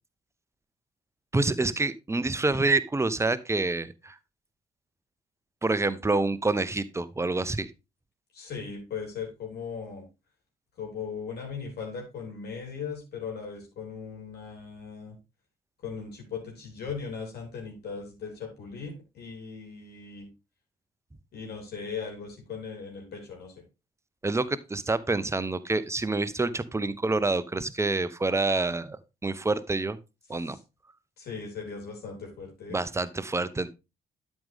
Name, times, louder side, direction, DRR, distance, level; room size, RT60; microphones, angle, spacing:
voice 1, 1.3-4.1 5.6-7.7 24.2-29.0 29.2-30.0 30.3-30.6 32.7-33.7, right 3 dB, 15° right, 15 dB, 0.8 m, -27 dB
voice 2, 8.3-10.1 10.8-15.1 15.8-20.3 21.3-23.5 30.5-30.6 31.2-32.8, left 5 dB, 55° left, 0 dB, 3.9 m, -38 dB
12.0 x 5.3 x 3.6 m, 0.27 s
figure-of-eight pair, 45°, 20 cm